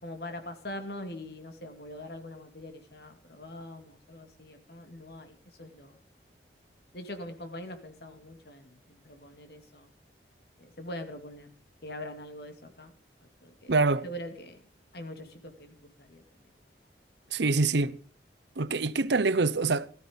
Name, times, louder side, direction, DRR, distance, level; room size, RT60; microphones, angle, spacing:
voice 1, 0.0-6.0 6.9-9.9 10.6-11.5 11.8-12.9 13.2-14.6 14.9-16.2, left 1 dB, 60° left, 2.5 m, -43 dB
voice 2, 13.7-14.1 17.3-18.0 18.6-19.9, right 3 dB, 75° right, 0.8 m, -25 dB
17.0 x 13.5 x 5.3 m
head